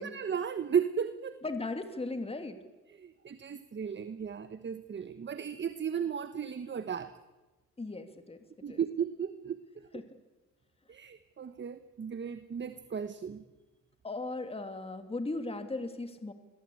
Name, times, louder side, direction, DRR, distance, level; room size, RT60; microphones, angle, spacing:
voice 1, 0.0-1.3 2.9-7.1 8.6-9.6 10.9-13.4, right 7 dB, 35° right, 12 dB, 1.2 m, -35 dB
voice 2, 1.4-2.7 7.8-8.4 8.7-8.8 9.9-10.0 14.0-16.3, left 2 dB, 20° left, 8 dB, 2.5 m, -37 dB
26.5 x 21.5 x 8.5 m, 1.2 s
cardioid pair, 90°, 30 cm